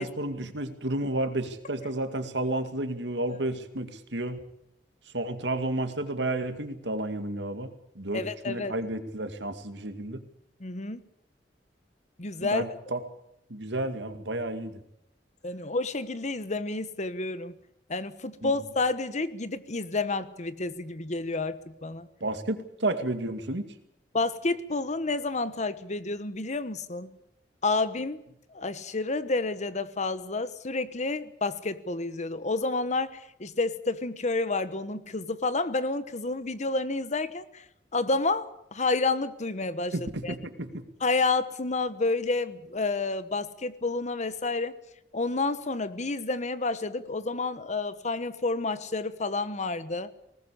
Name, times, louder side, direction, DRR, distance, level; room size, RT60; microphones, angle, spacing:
voice 1, 0.0-4.4 5.1-10.2 12.4-13.0 13.5-14.8 18.4-18.5 22.2-23.7 39.9-40.8, right 1 dB, 80° right, 8 dB, 2.3 m, -31 dB
voice 2, 8.1-8.7 10.6-11.0 12.2-12.6 15.4-17.5 17.9-22.1 24.1-27.1 27.6-28.2 28.5-37.6 37.9-40.3 41.0-44.7 45.1-50.1, left 3 dB, 40° left, 14 dB, 1.2 m, -30 dB
20.0 x 19.0 x 8.5 m, 0.79 s
head